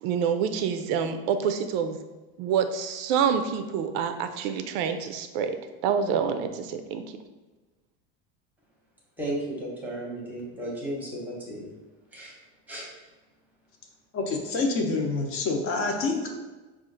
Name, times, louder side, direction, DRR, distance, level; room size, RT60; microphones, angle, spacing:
voice 1, 0.0-2.0 2.4-5.6 5.8-7.0, right 7 dB, 65° right, 8 dB, 0.4 m, -27 dB
voice 2, 9.2-11.7 12.1-12.3 12.7-12.9, right 1 dB, 5° right, -3 dB, 0.8 m, -34 dB
voice 3, 14.1-16.3, left 3 dB, 45° left, 1 dB, 0.7 m, -27 dB
4.9 x 2.4 x 3.8 m, 1.2 s
cardioid pair, 165°, 32 cm